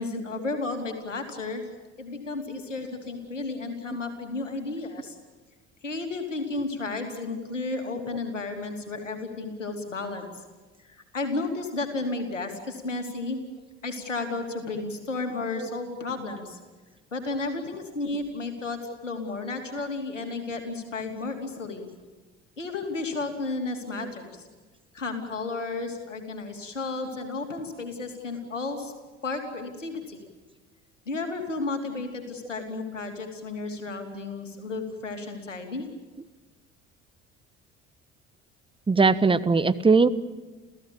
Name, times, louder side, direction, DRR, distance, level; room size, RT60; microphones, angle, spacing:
voice 1, 0.0-1.6 2.0-5.1 5.8-10.4 10.8-13.4 13.8-16.6 17.1-21.9 22.6-24.4 24.9-28.9 29.2-30.2 31.0-35.9, left 3 dB, 85° left, 5 dB, 3.1 m, -33 dB
voice 2, 38.9-40.1, right 4 dB, 15° right, 13 dB, 1.2 m, -21 dB
29.5 x 15.5 x 8.7 m, 1.3 s
figure-of-eight pair, 60°, 36 cm